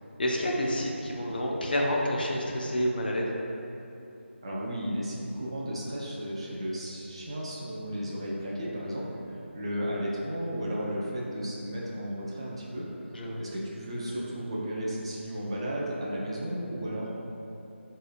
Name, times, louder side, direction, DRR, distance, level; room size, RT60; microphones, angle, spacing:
voice 1, 0.2-3.4 9.8-9.9 13.1-13.4, equal, 45° left, -2 dB, 0.4 m, -29 dB
voice 2, 4.4-12.9 13.4-17.1, equal, 25° right, -5 dB, 0.3 m, -34 dB
4.0 x 2.8 x 2.4 m, 2.9 s
figure-of-eight pair, 160°, 7 cm